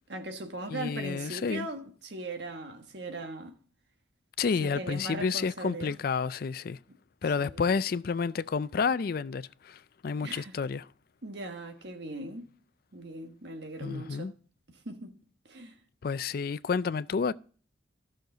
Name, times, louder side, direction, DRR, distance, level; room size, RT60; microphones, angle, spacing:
voice 1, 0.1-3.6 4.6-6.0 6.9-7.0 7.4-7.7 10.2-10.6 11.2-12.4 12.9-14.3 14.7-15.1 15.5-15.8, right 2 dB, 60° right, 1.4 m, -39 dB
voice 2, 0.7-1.7 4.4-6.8 7.2-10.9 13.8-14.3 16.0-17.3, left 5 dB, 50° left, 0.4 m, -30 dB
13.0 x 6.5 x 3.8 m
head